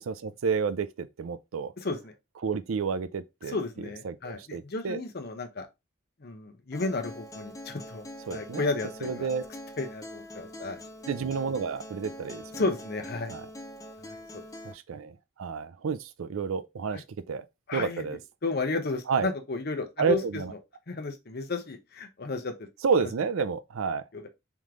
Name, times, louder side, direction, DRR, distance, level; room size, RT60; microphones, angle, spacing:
voice 1, 0.0-1.7 2.4-3.6 4.0-5.0 8.3-8.7 9.0-9.4 11.1-12.4 13.3-13.5 14.6-17.4 17.7-18.2 19.1-19.3 20.0-20.5 22.8-24.0, right 5 dB, 90° right, 0.4 m, -30 dB
voice 2, 1.8-2.1 3.5-5.7 6.2-8.0 8.3-9.3 9.8-10.8 12.6-13.3 14.0-14.4 17.7-20.4 20.9-22.5 24.1-24.3, left 3 dB, 50° left, 0.8 m, -33 dB
Acoustic guitar, 6.7-14.7, equal, 15° left, 0.7 m, -44 dB
3.6 x 3.1 x 3.6 m
head